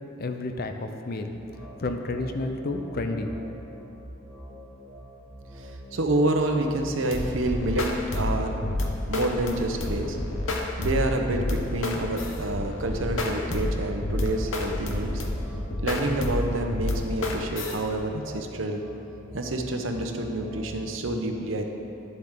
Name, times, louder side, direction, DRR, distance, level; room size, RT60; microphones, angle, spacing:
voice 1, 0.2-1.3 1.8-3.3, left 2 dB, 50° left, 6 dB, 0.6 m, -30 dB
sound 1, 1.3-20.9, equal, 30° right, 1.5 m, -43 dB
voice 2, 5.6-8.6 9.1-10.2 10.8-15.2 15.8-18.8 19.3-21.7, right 1 dB, 75° right, 4 dB, 0.8 m, -28 dB
sound 2, 7.1-17.8, left 1 dB, 70° left, 1.0 m, -29 dB
11.0 x 7.5 x 3.7 m, 2.7 s
head